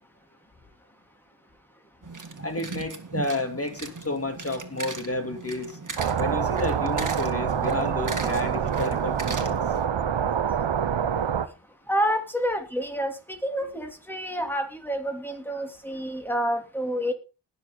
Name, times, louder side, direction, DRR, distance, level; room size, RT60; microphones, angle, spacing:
sound 1, 2.0-9.9, right 3 dB, 45° right, 2.0 m, -38 dB
voice 1, 2.4-5.8 6.2-9.6, left 2 dB, 30° left, 5 dB, 2.9 m, -31 dB
sound 2, 6.0-11.5, right 8 dB, 85° right, 0.9 m, -26 dB
voice 2, 11.9-17.1, equal, 5° left, 4 dB, 2.8 m, -28 dB
20.5 x 6.9 x 3.9 m, 0.31 s
wide cardioid pair, 55°, 43 cm